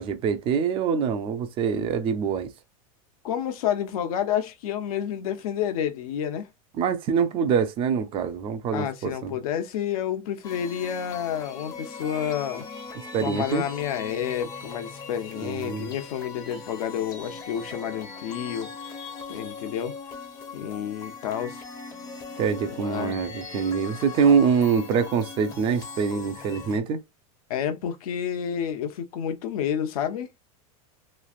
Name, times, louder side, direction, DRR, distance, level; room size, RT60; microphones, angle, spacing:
voice 1, 0.0-2.5 6.8-9.4 13.0-13.7 15.4-15.9 22.4-27.0, right 6 dB, 30° right, 0.5 m, -25 dB
voice 2, 3.2-6.5 8.7-12.6 13.2-18.7 19.3-19.9 20.5-21.6 22.8-23.2 24.2-24.4 27.5-30.3, left 9 dB, 80° left, 0.8 m, -29 dB
sound 1, 10.4-26.8, left 4 dB, 20° left, 0.6 m, -40 dB
3.2 x 2.5 x 2.3 m
supercardioid pair, 160°, 19 cm